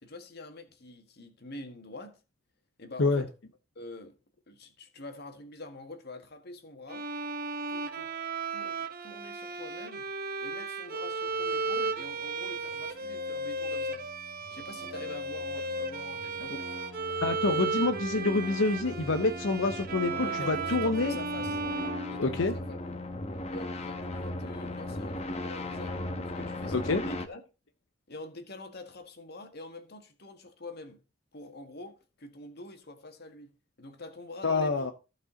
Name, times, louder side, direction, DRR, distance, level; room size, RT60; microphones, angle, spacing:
voice 1, 0.0-2.2 2.8-3.3 3.8-4.2 4.5-7.1 7.7-8.1 8.5-10.1 10.4-14.1 14.5-16.7 20.1-21.6 22.1-22.8 23.5-26.0 26.4-27.4 28.1-31.0 31.3-33.5 33.8-34.9, left 2 dB, 55° left, 1.7 m, -45 dB
Bowed string instrument, 6.9-22.8, right 3 dB, 50° right, 0.9 m, -35 dB
sound 1, 12.7-27.3, left 1 dB, 35° left, 1.0 m, -39 dB
voice 2, 17.2-21.2 22.2-22.5 26.7-27.0 34.4-34.9, left 3 dB, 85° left, 0.8 m, -27 dB
15.0 x 5.4 x 3.9 m
head